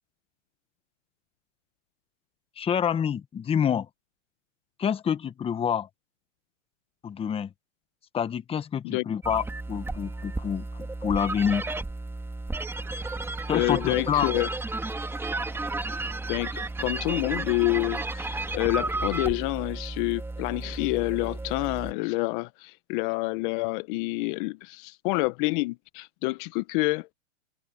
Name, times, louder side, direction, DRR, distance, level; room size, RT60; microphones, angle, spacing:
voice 1, 2.6-3.9 4.8-5.9 7.0-7.5 8.1-11.7 13.5-14.3, left 8 dB, 15° left, 1.1 m, -27 dB
sound 1, 9.2-21.9, right 2 dB, 5° right, 2.3 m, -33 dB
voice 2, 13.5-14.5 16.3-27.1, left 25 dB, 40° left, 0.9 m, -28 dB
hypercardioid pair, 130°, 39 cm